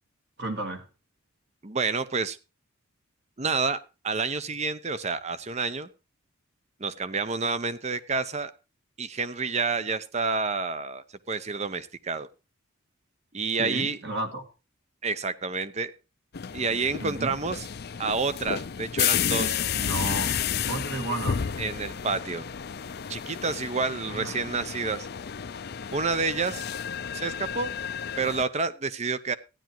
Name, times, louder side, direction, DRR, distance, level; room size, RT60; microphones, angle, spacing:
voice 1, 0.4-0.9 13.6-14.5 17.0-17.4 19.7-20.3 20.7-21.4 24.1-24.4, right 2 dB, 55° right, 5 dB, 2.1 m, -32 dB
voice 2, 1.6-2.4 3.4-5.9 6.8-8.5 9.0-12.3 13.3-14.0 15.0-15.9 16.5-17.7 18.0-19.6 21.6-22.4 23.1-25.1 25.9-26.6 27.1-27.7 28.2-29.3, right 4 dB, 30° right, 14 dB, 0.7 m, -29 dB
sound 1, 16.3-28.4, left 8 dB, 50° left, 0.5 m, -31 dB
15.0 x 10.5 x 3.0 m, 0.30 s
head